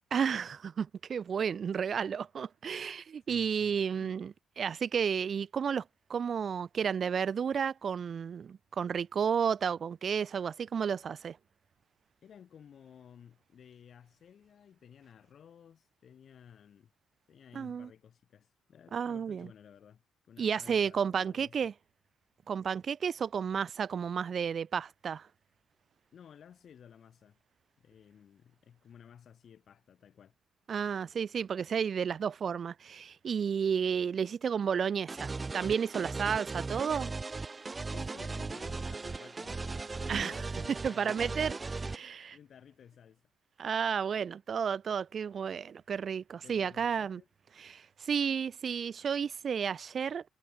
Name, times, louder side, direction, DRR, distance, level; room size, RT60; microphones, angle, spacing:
voice 1, 0.1-11.4 17.5-17.9 18.9-19.5 20.4-21.7 22.5-25.3 30.7-37.1 40.1-40.3 40.8-41.5 41.9-42.4 43.6-47.2 47.6-50.2, right 7 dB, 50° right, 1.1 m, -32 dB
voice 2, 3.3-4.2 12.2-16.9 17.3-21.6 26.1-27.4 27.8-30.3 37.9-41.5 42.3-43.2 46.4-47.3, left 8 dB, 60° left, 5.7 m, -55 dB
sound 1, 35.1-42.0, right 3 dB, 25° right, 2.6 m, -38 dB
cardioid pair, 90°, 0 cm